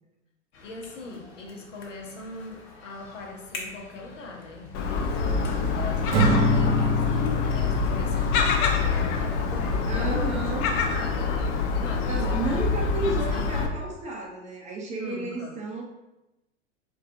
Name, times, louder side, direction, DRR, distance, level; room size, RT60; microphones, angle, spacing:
sound 1, 0.5-10.3, left 3 dB, 50° left, 0.9 m, -45 dB
voice 1, 0.6-10.4 10.8-12.7 12.9-13.5 15.0-15.6, left 2 dB, 85° left, 1 dB, 0.8 m, -41 dB
Gull seagull, 4.7-13.7, left 5 dB, 35° left, 0.4 m, -26 dB
Acoustic guitar / Strum, 6.1-9.4, equal, 55° right, 0.7 m, -25 dB
voice 2, 9.9-10.7 12.1-15.8, right 3 dB, 20° right, -1 dB, 0.5 m, -32 dB
4.3 x 2.3 x 2.5 m, 0.96 s
hypercardioid pair, 95°, 36 cm